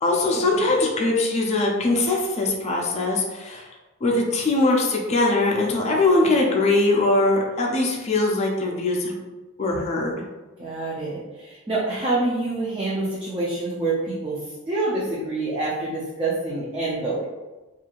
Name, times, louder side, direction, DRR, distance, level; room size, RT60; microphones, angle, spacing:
voice 1, 0.0-3.7 4.0-9.1 9.6-10.2, left 2 dB, 30° left, -1 dB, 0.4 m, -21 dB
voice 2, 10.6-14.4 14.7-17.3, right 2 dB, 25° right, -7 dB, 0.5 m, -26 dB
2.6 x 2.4 x 2.9 m, 1.1 s
head